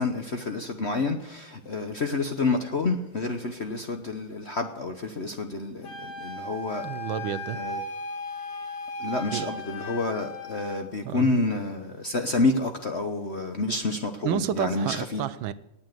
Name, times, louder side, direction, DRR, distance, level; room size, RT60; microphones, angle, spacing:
voice 1, 0.0-6.9 7.5-7.8 9.0-15.2, left 3 dB, 45° left, 0.9 m, -29 dB
Wind instrument woodwind instrument, 5.8-10.8, left 1 dB, 80° left, 2.9 m, -36 dB
voice 2, 6.8-7.6 9.3-9.5 11.0-11.3 14.2-15.5, right 11 dB, 75° right, 1.4 m, -30 dB
18.5 x 7.5 x 9.2 m
omnidirectional pair, 2.3 m